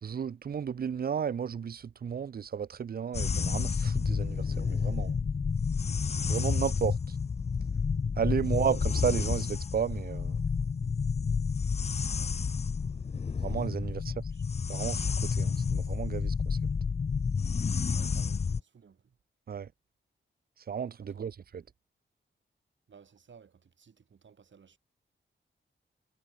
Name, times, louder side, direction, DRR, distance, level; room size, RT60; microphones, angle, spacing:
voice 1, 0.0-5.1 6.3-7.0 8.2-10.4 13.4-14.1 14.7-16.6 19.5-19.7 20.7-21.6, right 7 dB, 50° right, 0.5 m, -33 dB
sound 1, 3.1-18.6, left 5 dB, 30° left, 0.5 m, -30 dB
voice 2, 13.8-14.4 17.9-19.1 21.0-21.3 22.9-24.8, right 6 dB, 70° right, 4.6 m, -57 dB
wide cardioid pair, 115°, 20 cm